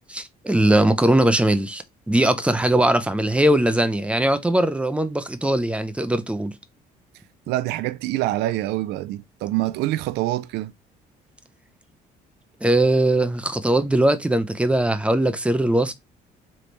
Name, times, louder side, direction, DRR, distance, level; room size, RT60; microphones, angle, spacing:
voice 1, 0.1-6.5 12.6-15.9, right 1 dB, 5° right, 0.6 m, -20 dB
voice 2, 7.5-10.7, right 16 dB, 85° right, 0.4 m, -25 dB
3.4 x 3.2 x 4.0 m
cardioid pair, 110°, 17 cm